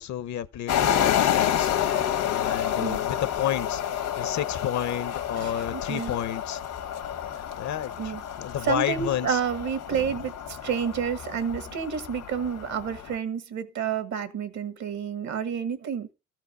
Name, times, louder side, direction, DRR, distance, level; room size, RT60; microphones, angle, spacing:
voice 1, 0.0-6.6 7.6-9.4 9.9-10.1, left 10 dB, 65° left, 0.8 m, -31 dB
sound 1, 0.7-13.1, left 10 dB, 85° left, 1.5 m, -29 dB
voice 2, 5.4-6.1 8.0-8.2 8.6-16.1, right 7 dB, 65° right, 1.4 m, -30 dB
13.5 x 4.5 x 5.5 m
cardioid pair, 90°, 30 cm